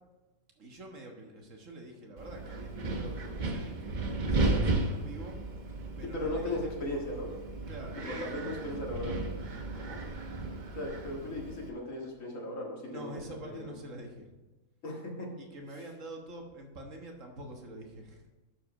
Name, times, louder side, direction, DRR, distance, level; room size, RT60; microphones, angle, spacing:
voice 1, 0.6-5.4 6.0-6.7 7.7-8.5 9.7-10.0 12.9-14.2 15.4-18.1, right 1 dB, 70° right, 2 dB, 1.7 m, -46 dB
Wind, 2.2-11.7, right 2 dB, 40° right, 0.9 m, -34 dB
voice 2, 6.0-7.3 8.1-9.2 10.8-13.7 14.8-15.3 15.7-15.9, left 1 dB, 75° left, -1 dB, 2.3 m, -37 dB
11.5 x 5.1 x 4.7 m, 1.1 s
omnidirectional pair, 1.4 m